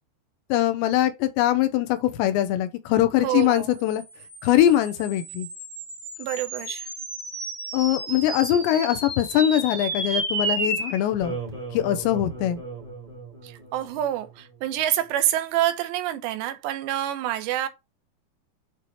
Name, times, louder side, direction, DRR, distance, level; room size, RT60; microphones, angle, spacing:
voice 1, 0.5-4.0 4.4-5.5 7.7-11.4 11.7-12.6, left 12 dB, 85° left, 3.0 m, -22 dB
voice 2, 3.2-3.7 6.2-6.9 13.4-17.7, right 12 dB, 75° right, 3.0 m, -27 dB
sound 1, 3.8-14.4, right 2 dB, 20° right, 0.9 m, -33 dB
8.5 x 3.2 x 4.6 m
omnidirectional pair, 5.3 m